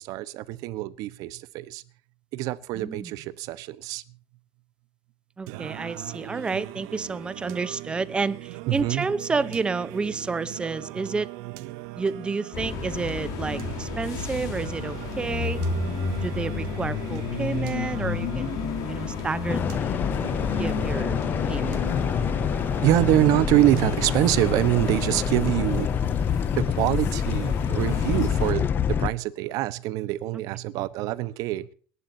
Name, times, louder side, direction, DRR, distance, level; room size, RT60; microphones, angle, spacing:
voice 1, 0.0-1.8 2.3-4.0 8.7-9.1 22.8-26.1 26.5-31.7, right 16 dB, 65° right, 1.1 m, -25 dB
voice 2, 2.7-3.1 5.4-11.3 12.0-15.6 16.2-20.0 20.6-21.2 21.5-21.8 28.1-28.5 30.7-30.9, right 4 dB, 15° right, 0.8 m, -30 dB
Singing, 5.5-24.5, right 18 dB, 85° right, 0.9 m, -40 dB
sound 1, 12.5-28.5, left 5 dB, 65° left, 3.8 m, -32 dB
sound 2, 19.5-29.1, left 8 dB, 30° left, 0.6 m, -26 dB
28.0 x 11.5 x 2.8 m
cardioid pair, 155°, 7 cm